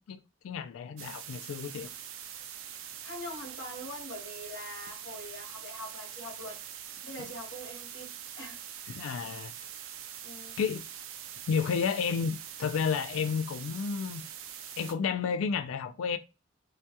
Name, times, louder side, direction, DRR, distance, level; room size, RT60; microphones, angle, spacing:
voice 1, 0.0-1.9 8.9-9.5 10.6-10.8 11.5-14.2 14.8-16.2, left 6 dB, 85° left, 0.3 m, -31 dB
sound 1, 1.0-14.9, right 9 dB, 80° right, 0.4 m, -44 dB
voice 2, 3.0-6.6 7.0-8.1 8.3-8.6 10.2-10.5, left 1 dB, 65° left, 1.0 m, -43 dB
2.3 x 2.2 x 2.7 m
head